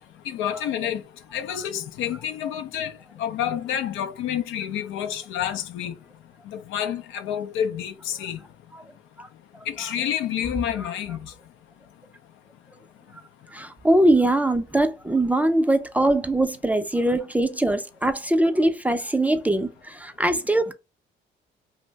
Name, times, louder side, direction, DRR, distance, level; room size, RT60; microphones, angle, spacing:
voice 1, 0.3-1.0 1.3-2.9 3.2-6.0 6.5-8.4 9.7-11.3, left 9 dB, 90° left, 0.4 m, -28 dB
voice 2, 13.5-20.7, right 1 dB, 10° right, 0.3 m, -22 dB
2.6 x 2.0 x 3.2 m
cardioid pair, 90°, 20 cm